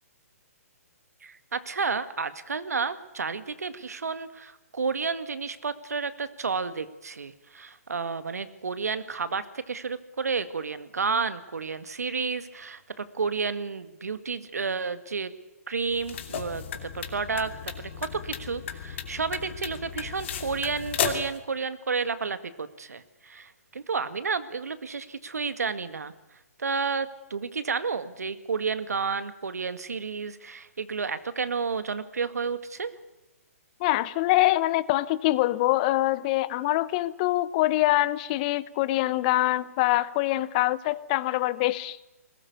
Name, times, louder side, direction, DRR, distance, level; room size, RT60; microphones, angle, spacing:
voice 1, 1.2-15.3 15.7-26.1 26.6-32.9, right 5 dB, 85° right, 12 dB, 1.9 m, -31 dB
sound 1, 15.9-21.4, left 8 dB, 50° left, 2.8 m, -34 dB
voice 2, 33.8-42.0, left 17 dB, 30° left, 18 dB, 0.8 m, -24 dB
21.0 x 19.0 x 8.3 m, 1.0 s
hypercardioid pair, 145°, 8 cm